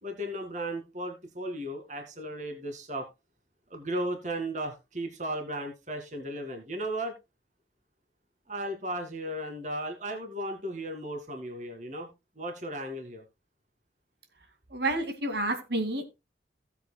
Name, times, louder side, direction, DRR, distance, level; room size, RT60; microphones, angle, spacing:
voice 1, 0.0-3.1 3.7-7.1 8.5-12.1 12.4-13.2, right 1 dB, 45° right, 2.1 m, -35 dB
voice 2, 14.7-16.1, right 2 dB, 70° right, 2.1 m, -29 dB
16.5 x 8.2 x 2.2 m
head